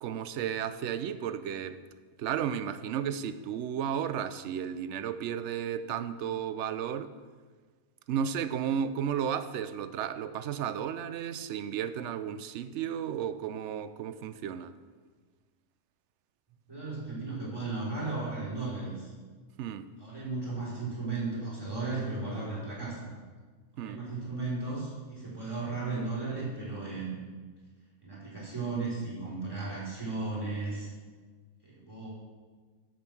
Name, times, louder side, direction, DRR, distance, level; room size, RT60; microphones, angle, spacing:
voice 1, 0.0-1.8 2.2-7.1 8.1-14.7 19.6-19.9 23.8-24.0, right 8 dB, 65° right, 0.8 m, -33 dB
voice 2, 16.7-19.1 20.0-23.1 23.8-27.2 28.0-30.9 31.6-32.1, right 3 dB, 15° right, 3.7 m, -35 dB
8.6 x 7.8 x 6.1 m
omnidirectional pair, 1.5 m